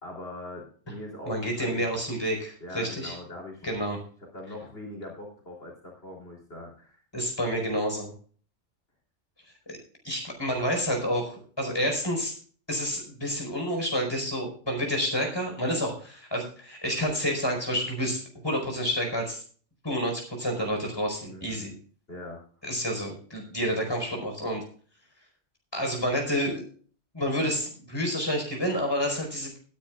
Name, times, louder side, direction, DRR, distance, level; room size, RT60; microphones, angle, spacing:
voice 1, 0.0-1.9 2.6-3.7 4.3-7.0 21.3-21.7 22.1-22.4, left 1 dB, 55° left, -2 dB, 3.7 m, -41 dB
voice 2, 1.3-3.1 3.6-4.0 7.1-8.1 9.7-9.8 10.0-12.3 12.7-19.4 19.8-21.7 22.6-24.6 25.7-26.6 27.1-29.6, equal, 20° left, 2 dB, 4.7 m, -29 dB
20.0 x 10.5 x 2.4 m, 0.44 s
omnidirectional pair, 1.2 m